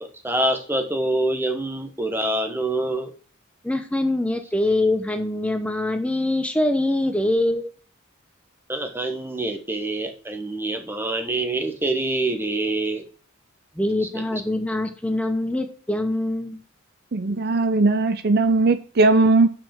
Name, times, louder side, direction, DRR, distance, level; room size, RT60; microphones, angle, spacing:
voice 1, 0.0-3.1 8.7-13.0 14.1-14.4, right 2 dB, 10° right, 1.1 m, -26 dB
voice 2, 3.6-7.7 13.8-16.6, left 1 dB, 5° left, 0.8 m, -24 dB
voice 3, 17.1-19.5, right 3 dB, 50° right, 0.6 m, -18 dB
6.0 x 4.8 x 6.4 m
head